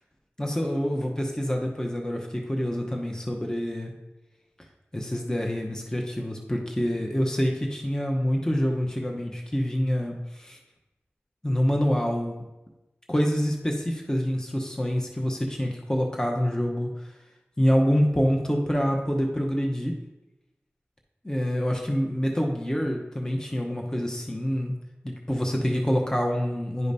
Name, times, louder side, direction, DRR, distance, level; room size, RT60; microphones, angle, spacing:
voice 1, 0.4-3.9 4.9-10.6 11.4-12.4 13.1-16.9 17.6-20.0 21.2-24.7 25.0-26.9, equal, 15° left, 0 dB, 0.9 m, -26 dB
10.5 x 5.0 x 2.7 m, 1.0 s
cardioid pair, 40°, 5 cm